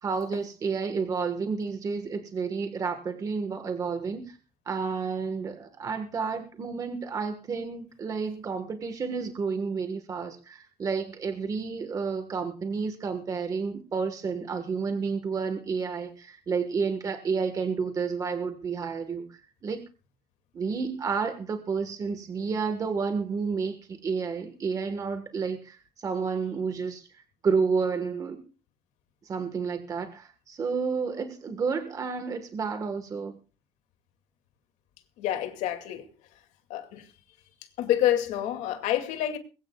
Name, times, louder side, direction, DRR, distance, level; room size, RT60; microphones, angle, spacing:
voice 1, 0.0-4.4 4.7-19.8 20.5-28.4 29.2-33.4, right 5 dB, 30° right, 1.4 m, -30 dB
voice 2, 35.2-36.0 36.7-37.0 37.8-39.4, left 12 dB, 80° left, 2.4 m, -27 dB
21.5 x 17.0 x 2.3 m
cardioid pair, 160°, 12 cm